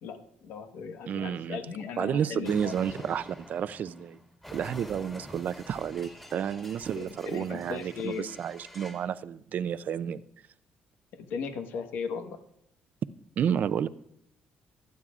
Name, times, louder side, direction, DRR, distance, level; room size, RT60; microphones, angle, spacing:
voice 1, 0.0-2.7 6.9-8.3 11.1-12.4, left 6 dB, 85° left, 7 dB, 1.2 m, -37 dB
voice 2, 1.1-1.6 2.0-4.2 4.5-10.2 13.4-13.9, right 8 dB, 55° right, 15 dB, 0.5 m, -31 dB
Explosion, 2.4-9.1, equal, 10° left, 2.1 m, -47 dB
26.0 x 9.3 x 2.4 m, 0.75 s
cardioid pair, 115°, 3 cm